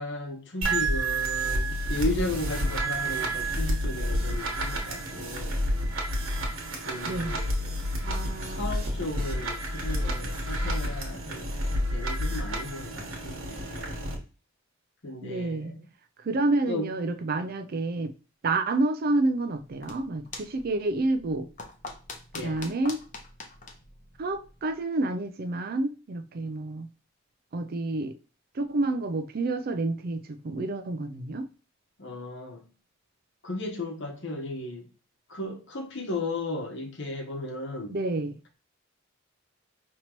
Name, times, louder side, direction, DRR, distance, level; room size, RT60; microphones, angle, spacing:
voice 1, 0.0-5.6 6.8-11.5 11.9-14.0 15.0-15.9 16.7-16.9 22.3-22.6 32.0-32.6 33.4-34.9 35.3-38.0, left 2 dB, 60° left, 1.0 m, -35 dB
sound 1, 0.6-14.2, right 1 dB, 80° right, 1.2 m, -30 dB
voice 2, 7.1-7.4 8.0-8.6 15.2-15.7 16.2-18.1 18.4-21.5 22.4-23.0 24.2-26.9 27.5-28.2 28.5-31.5 37.9-38.4, right 2 dB, 45° right, 0.4 m, -29 dB
sound 2, 19.7-24.8, left 3 dB, 40° left, 0.8 m, -45 dB
5.3 x 2.9 x 3.0 m
head